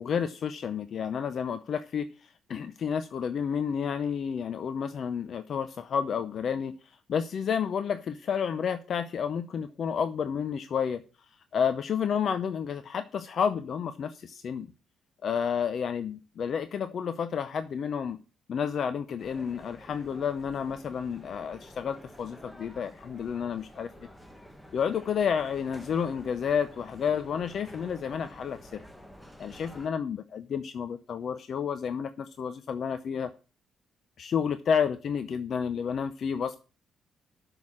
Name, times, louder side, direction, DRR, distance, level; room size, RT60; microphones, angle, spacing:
voice 1, 0.0-11.0 11.5-14.7 15.2-18.2 18.5-23.9 24.7-28.8 29.4-33.3 34.2-36.6, left 7 dB, 55° left, 12 dB, 0.6 m, -30 dB
sound 1, 19.2-29.9, equal, 5° left, 1.4 m, -50 dB
6.8 x 6.3 x 7.2 m, 0.34 s
cardioid pair, 90°, 0 cm